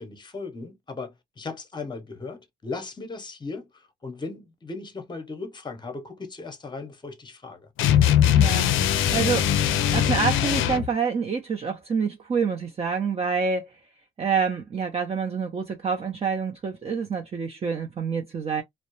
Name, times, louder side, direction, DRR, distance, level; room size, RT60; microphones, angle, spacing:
voice 1, 0.0-7.7, left 3 dB, 20° left, 0.7 m, -37 dB
sound 1, 7.8-10.9, left 10 dB, 80° left, 0.4 m, -21 dB
voice 2, 8.3-9.5 9.9-13.7 14.2-18.6, right 5 dB, 30° right, 0.5 m, -27 dB
2.3 x 2.0 x 2.8 m
cardioid pair, 90°, 20 cm